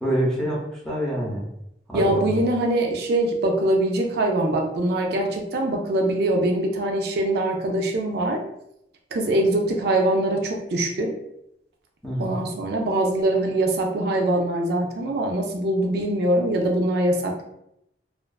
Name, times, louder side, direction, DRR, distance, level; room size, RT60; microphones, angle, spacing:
voice 1, 0.0-1.4 1.9-2.4 12.0-12.4, right 1 dB, 5° left, -5 dB, 0.6 m, -26 dB
voice 2, 1.9-8.4 9.1-11.1 12.2-17.4, right 1 dB, 60° right, 2 dB, 0.4 m, -23 dB
2.4 x 2.3 x 2.2 m, 0.79 s
head